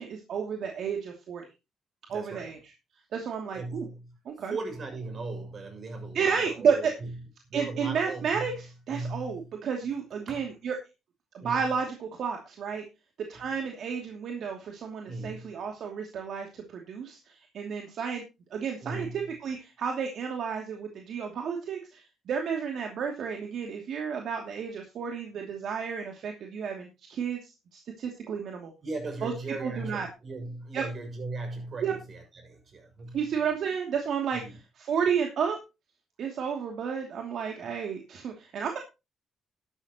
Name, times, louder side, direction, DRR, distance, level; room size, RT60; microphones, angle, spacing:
voice 1, 0.0-1.4 2.1-2.6 3.1-3.9 4.2-4.5 6.1-6.9 7.5-10.8 11.3-12.8 13.3-18.2 18.5-28.7 29.2-29.3 29.6-30.1 30.7-30.8 31.8-31.9 33.1-34.4 34.8-35.6 36.2-38.8, right 6 dB, 65° right, 2.7 m, -31 dB
voice 2, 2.1-2.6 3.5-4.2 4.5-7.2 7.4-8.6 8.9-9.5 10.3-10.5 11.4-11.7 13.3-13.4 15.1-15.5 18.8-19.3 28.8-33.2 34.3-34.6 37.6-37.7, right 3 dB, 45° right, 6.6 m, -38 dB
12.5 x 12.5 x 3.0 m
cardioid pair, 90°, 0 cm